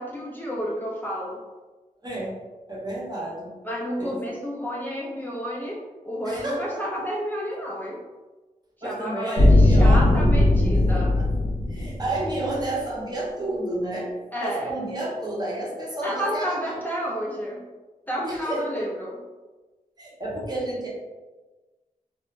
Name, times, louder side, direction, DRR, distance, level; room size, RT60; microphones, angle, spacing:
voice 1, 0.0-1.4 3.6-5.8 6.1-8.0 8.8-11.1 14.3-14.7 16.0-17.6 18.1-19.2, equal, 10° left, -5 dB, 0.4 m, -30 dB
voice 2, 2.0-2.4 2.7-3.5 4.0-4.4 6.2-7.0 8.8-10.1 10.7-14.1 14.4-16.8 18.2-18.6 20.0-20.9, right 1 dB, 25° right, -5 dB, 0.8 m, -31 dB
sound 1, 9.4-12.6, left 1 dB, 75° left, 0.5 m, -18 dB
2.9 x 2.0 x 2.3 m, 1.2 s
wide cardioid pair, 80°, 15 cm